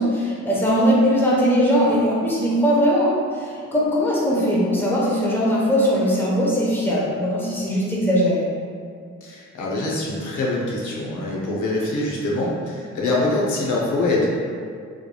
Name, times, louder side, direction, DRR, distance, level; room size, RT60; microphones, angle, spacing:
voice 1, 0.0-8.5, equal, 5° left, -6 dB, 0.9 m, -20 dB
voice 2, 9.2-14.3, left 2 dB, 75° left, -4 dB, 0.7 m, -24 dB
3.5 x 3.2 x 2.2 m, 2.2 s
cardioid pair, 70°, 31 cm